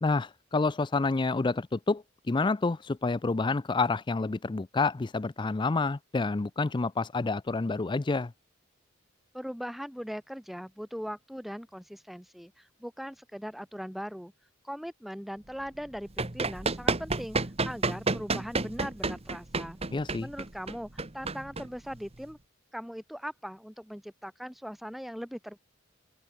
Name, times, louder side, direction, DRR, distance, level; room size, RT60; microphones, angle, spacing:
voice 1, 0.0-8.3 19.9-20.3, left 3 dB, 25° left, 0.4 m, -28 dB
voice 2, 9.3-14.3 14.6-17.4 17.6-19.8 20.2-22.4 22.7-25.6, equal, ahead, 1.6 m, -40 dB
Run, 15.8-22.3, right 3 dB, 30° right, 1.6 m, -31 dB
head